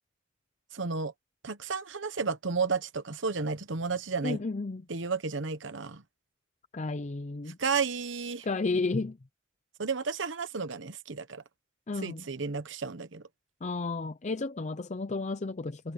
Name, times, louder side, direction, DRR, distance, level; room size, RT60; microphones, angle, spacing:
voice 1, 0.7-1.1 1.4-4.4 4.9-6.0 7.6-8.5 9.8-11.4 12.0-13.2, right 5 dB, 65° right, 1.1 m, -32 dB
voice 2, 4.2-4.8 6.7-7.6 8.4-9.2 11.9-12.2 13.6-15.9, left 3 dB, 35° left, 0.6 m, -32 dB
head